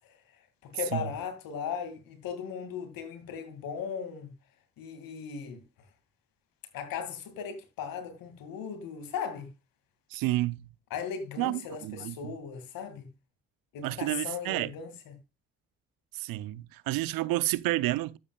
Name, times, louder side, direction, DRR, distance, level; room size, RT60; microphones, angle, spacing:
voice 1, 0.6-4.3 4.8-5.6 6.7-9.5 10.9-13.1 13.7-15.1, left 7 dB, 80° left, 2.4 m, -37 dB
voice 2, 10.1-10.7 11.4-12.3 13.8-14.7 16.1-18.2, right 17 dB, 80° right, 0.7 m, -30 dB
12.0 x 8.6 x 2.4 m
supercardioid pair, 50°, 34 cm